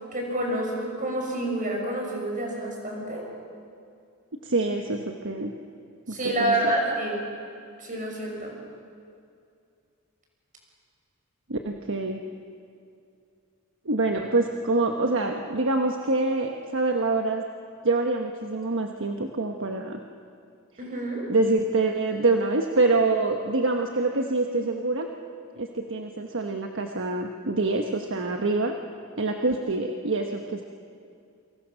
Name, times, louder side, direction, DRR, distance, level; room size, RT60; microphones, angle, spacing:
voice 1, 0.1-3.3 6.1-7.2 7.8-8.5 20.8-21.3, right 1 dB, 40° right, 0 dB, 6.1 m, -28 dB
voice 2, 4.4-5.5 6.1-6.5 11.5-12.2 13.8-17.4 17.8-20.0 21.3-25.1 25.6-28.7 29.2-30.6, right 2 dB, 65° right, 3 dB, 1.3 m, -25 dB
29.0 x 24.0 x 6.4 m, 2.4 s
head